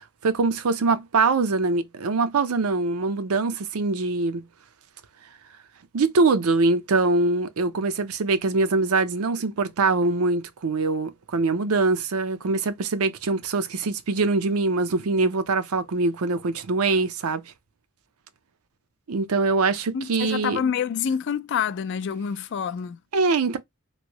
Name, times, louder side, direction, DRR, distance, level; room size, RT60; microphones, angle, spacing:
voice 1, 0.0-4.5 5.9-17.4 19.1-20.6 23.1-23.6, right 3 dB, 80° right, 0.6 m, -23 dB
voice 2, 19.9-23.0, left 7 dB, 55° left, 0.3 m, -27 dB
3.1 x 2.7 x 2.9 m
head